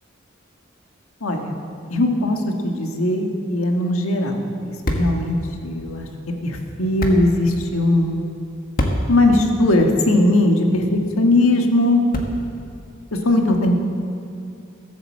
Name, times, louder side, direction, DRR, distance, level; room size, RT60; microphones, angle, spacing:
voice 1, 1.2-1.5 1.9-2.4 2.6-4.4 4.6-5.4 5.6-6.1 6.4-8.2 9.1-10.8 11.2-12.0 13.2-13.7, left 1 dB, 85° left, 3 dB, 1.5 m, -19 dB
sound 1, 3.6-12.7, equal, 45° left, 1.4 m, -31 dB
15.0 x 8.1 x 7.4 m, 2.5 s
head